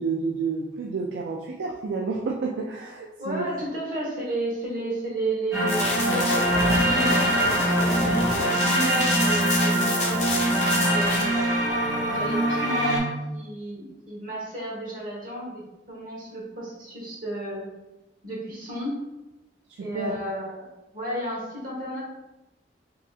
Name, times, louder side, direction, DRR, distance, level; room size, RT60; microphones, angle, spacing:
voice 1, 0.0-3.5 19.8-20.2, right 4 dB, 80° right, -1 dB, 0.3 m, -30 dB
voice 2, 3.2-11.4 12.0-17.7 18.2-19.0 19.8-20.7 20.9-22.0, right 1 dB, 50° right, -4 dB, 1.1 m, -32 dB
sound 1, 5.5-13.0, right 1 dB, 15° right, 0.8 m, -23 dB
sound 2, 5.7-11.2, left 2 dB, 40° left, 0.7 m, -30 dB
3.4 x 2.8 x 2.3 m, 1.0 s
head